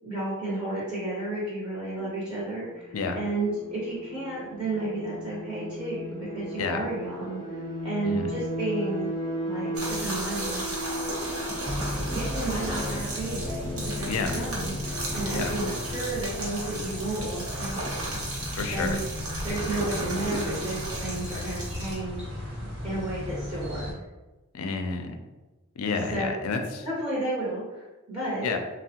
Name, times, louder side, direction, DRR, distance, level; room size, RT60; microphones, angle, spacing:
voice 1, 0.0-9.1 9.4-10.9 11.8-19.0 19.4-22.5 22.8-23.9 26.1-26.3 26.8-28.5, right 2 dB, 25° right, -8 dB, 0.7 m, -32 dB
sound 1, 2.0-16.2, equal, 15° left, 0.5 m, -37 dB
sound 2, 9.8-22.0, right 1 dB, 75° right, 0.9 m, -35 dB
sound 3, 11.6-23.9, left 1 dB, 50° right, 1.2 m, -35 dB
voice 2, 14.1-14.4 15.3-15.5 18.5-19.0 24.5-25.2 25.8-26.9 28.4-28.6, left 4 dB, 70° left, 5 dB, 0.4 m, -30 dB
3.3 x 2.0 x 2.7 m, 1.1 s
head